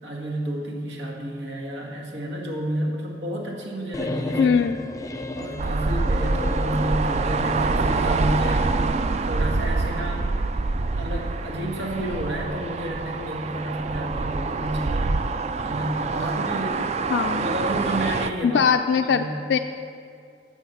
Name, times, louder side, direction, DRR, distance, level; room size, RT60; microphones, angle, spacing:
voice 1, 0.0-4.6 5.3-8.7 9.2-15.2 15.6-17.0 17.4-18.6 19.0-19.4, right 1 dB, 90° right, 0 dB, 1.8 m, -30 dB
sound 1, 3.9-7.7, left 2 dB, 20° left, 0.5 m, -33 dB
voice 2, 4.4-4.8 17.1-17.5 18.4-19.6, left 6 dB, 80° left, 6 dB, 0.3 m, -21 dB
sound 2, 5.6-18.3, right 3 dB, 35° right, 0.3 m, -25 dB
10.5 x 7.1 x 5.7 m, 2.4 s
head